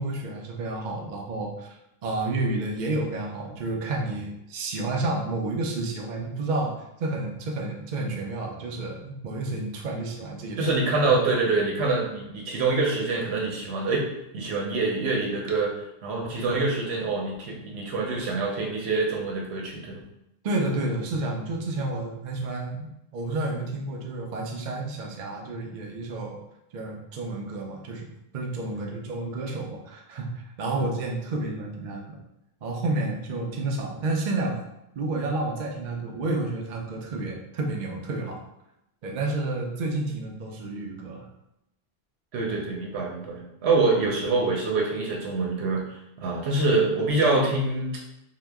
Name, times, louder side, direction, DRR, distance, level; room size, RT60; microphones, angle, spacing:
voice 1, 0.0-10.7 11.0-11.1 20.4-26.4 26.7-28.1 28.3-32.2 32.6-34.6 35.0-38.4 39.0-41.2, right 2 dB, 55° right, 0 dB, 0.6 m, -30 dB
voice 2, 10.6-14.0 14.3-15.7 16.0-20.0 28.7-29.0 42.3-47.9, right 3 dB, 85° right, -1 dB, 1.0 m, -25 dB
2.8 x 2.1 x 3.4 m, 0.85 s
omnidirectional pair, 1.1 m